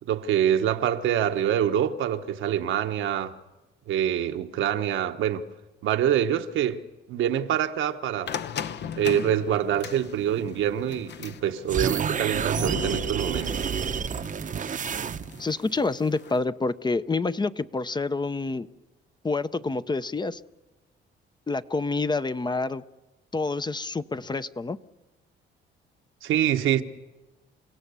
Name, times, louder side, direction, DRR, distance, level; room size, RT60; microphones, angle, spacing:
voice 1, 0.1-3.4 3.9-5.5 5.8-6.8 7.1-8.3 9.0-13.7 26.2-26.8, right 10 dB, 80° right, 1.2 m, -25 dB
sound 1, 8.3-16.4, left 8 dB, 60° left, 0.9 m, -39 dB
sound 2, 11.7-15.5, right 7 dB, 40° right, 0.8 m, -29 dB
voice 2, 15.4-18.7 19.2-20.4 21.5-22.8 23.3-24.8, left 3 dB, 20° left, 0.7 m, -28 dB
30.0 x 16.5 x 6.9 m
cardioid pair, 90°, 20 cm